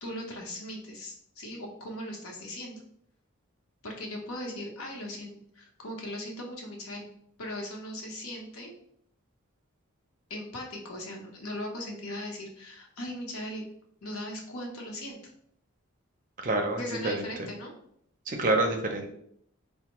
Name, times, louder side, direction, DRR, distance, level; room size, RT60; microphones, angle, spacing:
voice 1, 0.0-2.8 3.8-7.1 7.4-8.7 10.3-13.7 14.0-15.2 16.8-17.7, left 1 dB, 85° left, 0 dB, 0.9 m, -39 dB
voice 2, 16.4-17.2 18.3-19.1, right 2 dB, 40° right, 3 dB, 0.5 m, -27 dB
4.3 x 2.1 x 2.9 m, 0.69 s
head